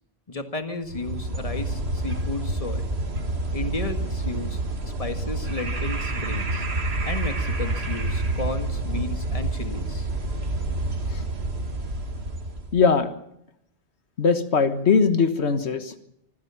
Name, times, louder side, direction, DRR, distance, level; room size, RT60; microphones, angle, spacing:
voice 1, 0.3-2.9 3.5-4.6 5.0-6.7 7.1-10.1, left 2 dB, 35° left, 7 dB, 1.9 m, -33 dB
sound 1, 0.9-12.8, right 2 dB, 75° right, 2.3 m, -28 dB
voice 2, 12.7-13.1 14.2-15.9, left 5 dB, 90° left, 10 dB, 1.7 m, -20 dB
25.0 x 15.5 x 7.0 m, 0.76 s
omnidirectional pair, 1.1 m